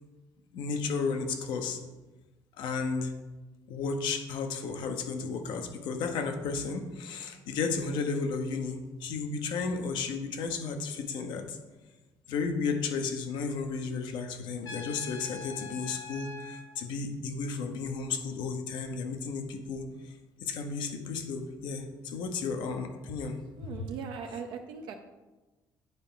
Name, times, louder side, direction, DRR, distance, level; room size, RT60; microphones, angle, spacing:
voice 1, 0.5-1.8 2.6-3.1 3.7-11.6 12.3-20.1 20.4-23.4, left 4 dB, 80° left, 6 dB, 0.9 m, -33 dB
Trumpet, 14.6-16.7, left 4 dB, 60° left, 1.3 m, -43 dB
voice 2, 23.6-25.0, right 6 dB, 80° right, 4 dB, 0.6 m, -39 dB
9.3 x 4.5 x 3.8 m, 1.1 s
cardioid pair, 130°, 8 cm